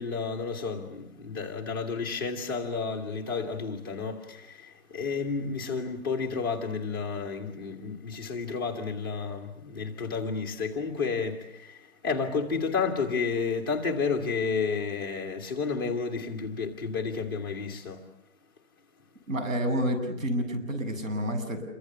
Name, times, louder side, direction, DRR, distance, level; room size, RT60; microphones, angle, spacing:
voice 1, 0.0-18.0, left 5 dB, 15° left, 1.4 m, -31 dB
voice 2, 19.3-21.6, equal, 65° right, 7.7 m, -29 dB
28.5 x 24.0 x 7.0 m
hypercardioid pair, 175°, 42 cm